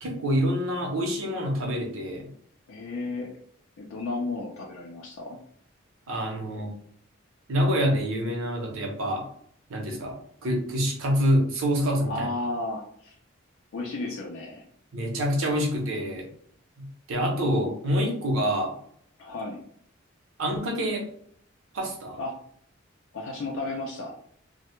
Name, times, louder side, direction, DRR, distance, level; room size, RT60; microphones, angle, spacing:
voice 1, 0.0-2.3 6.1-6.7 7.5-9.3 9.7-12.3 14.9-16.3 16.8-18.7 20.4-21.1 21.7-22.2, equal, 90° right, 1 dB, 0.6 m, -26 dB
voice 2, 2.7-3.4 3.8-5.4 12.0-13.2 13.7-14.6 19.2-19.6 22.2-22.3 23.1-24.1, left 2 dB, 85° left, -2 dB, 0.4 m, -33 dB
2.1 x 2.1 x 3.0 m, 0.64 s
head